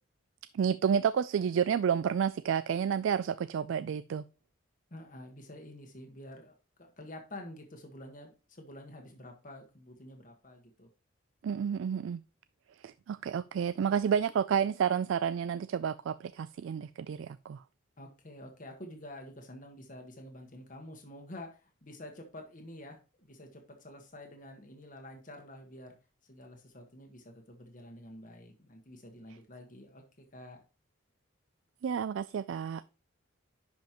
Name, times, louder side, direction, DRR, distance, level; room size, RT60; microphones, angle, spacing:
voice 1, 0.5-4.2 11.4-12.2 12.8-17.6 31.8-32.8, right 7 dB, 70° right, 0.3 m, -30 dB
voice 2, 4.9-10.9 18.0-26.0 26.2-30.0 30.3-30.6, left 1 dB, 40° left, 1.4 m, -48 dB
10.5 x 5.2 x 2.9 m
head